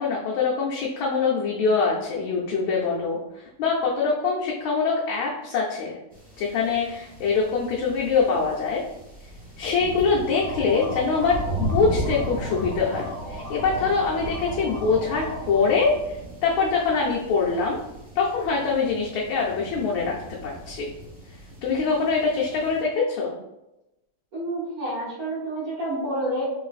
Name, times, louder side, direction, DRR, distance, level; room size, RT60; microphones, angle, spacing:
voice 1, 0.0-6.0 6.4-8.8 9.6-17.8 18.1-20.2 20.4-20.9 21.6-23.3, left 4 dB, 80° left, -4 dB, 1.4 m, -24 dB
sound 1, 6.1-22.8, right 1 dB, 10° right, 0.4 m, -36 dB
sound 2, 10.2-15.9, right 1 dB, 80° right, 1.6 m, -38 dB
voice 2, 24.3-26.4, right 1 dB, 50° right, -7 dB, 1.5 m, -29 dB
3.8 x 3.1 x 2.4 m, 0.93 s
omnidirectional pair, 2.3 m